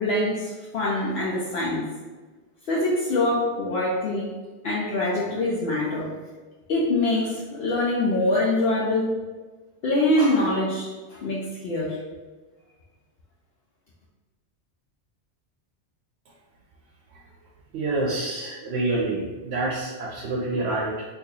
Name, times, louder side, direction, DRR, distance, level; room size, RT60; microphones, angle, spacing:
voice 1, 0.0-1.8 2.7-4.3 4.6-6.1 6.7-9.1 9.8-12.0, left 1 dB, 70° left, -6 dB, 0.8 m, -24 dB
voice 2, 17.7-21.1, right 2 dB, 80° right, -3 dB, 0.8 m, -27 dB
3.9 x 2.6 x 2.7 m, 1.3 s
omnidirectional pair, 1.1 m